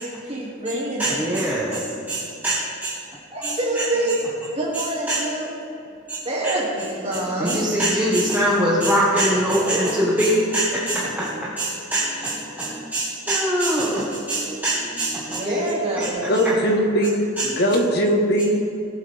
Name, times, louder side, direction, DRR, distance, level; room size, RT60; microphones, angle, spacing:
voice 1, 0.0-1.2 3.3-4.2 4.5-5.5 6.2-7.8 15.3-16.3, right 1 dB, 30° right, -4 dB, 2.6 m, -26 dB
voice 2, 1.0-2.9 3.4-4.2 4.7-5.2 6.1-6.2 6.4-6.5 7.4-16.1 16.3-16.5 17.4-17.5, right 1 dB, 10° right, -8 dB, 1.6 m, -23 dB
voice 3, 16.3-17.2 17.4-18.5, equal, 55° left, 2 dB, 1.5 m, -19 dB
18.5 x 8.0 x 3.6 m, 2.8 s
head